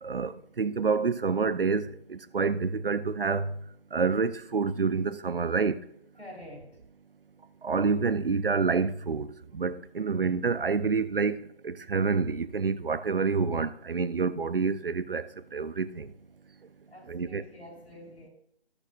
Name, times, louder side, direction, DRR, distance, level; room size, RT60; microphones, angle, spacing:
voice 1, 0.0-3.5 3.9-5.8 7.6-11.4 11.6-15.2 15.5-16.1 17.1-17.4, right 5 dB, 55° right, 0.6 m, -28 dB
voice 2, 6.2-6.8 16.9-18.3, left 1 dB, 75° left, 4.3 m, -47 dB
19.0 x 7.0 x 2.5 m
figure-of-eight pair, 155°, 33 cm